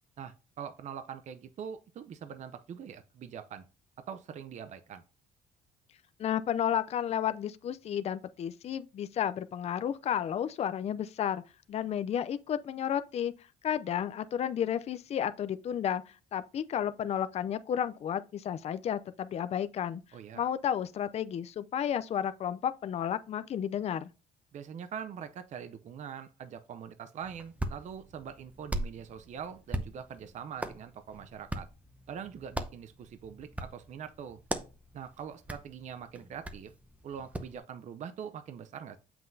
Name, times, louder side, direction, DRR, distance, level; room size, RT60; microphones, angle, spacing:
voice 1, 0.2-3.7 4.1-5.0 20.1-20.4 24.5-31.7 32.1-34.4 34.9-36.7 37.0-39.0, right 8 dB, 45° right, 0.6 m, -43 dB
voice 2, 6.2-11.4 11.7-13.3 13.6-16.0 16.3-20.0 20.3-24.1, left 9 dB, 40° left, 0.4 m, -32 dB
Hands, 27.2-37.6, right 1 dB, 10° right, 0.7 m, -41 dB
7.3 x 5.8 x 2.6 m
cardioid pair, 110°, 17 cm